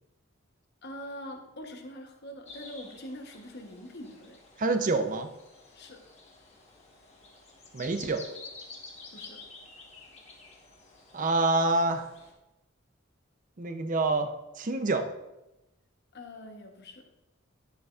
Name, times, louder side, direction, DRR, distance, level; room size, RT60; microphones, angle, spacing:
voice 1, 0.8-4.4 4.9-5.0 5.7-6.0 9.1-9.4 16.1-17.1, left 1 dB, 55° left, 4 dB, 1.0 m, -43 dB
sound 1, 2.5-12.3, left 3 dB, 30° left, 1.2 m, -50 dB
voice 2, 4.6-5.3 7.7-8.3 11.1-12.0 13.6-15.1, right 2 dB, 40° right, 8 dB, 0.5 m, -27 dB
10.5 x 6.8 x 2.4 m, 0.95 s
head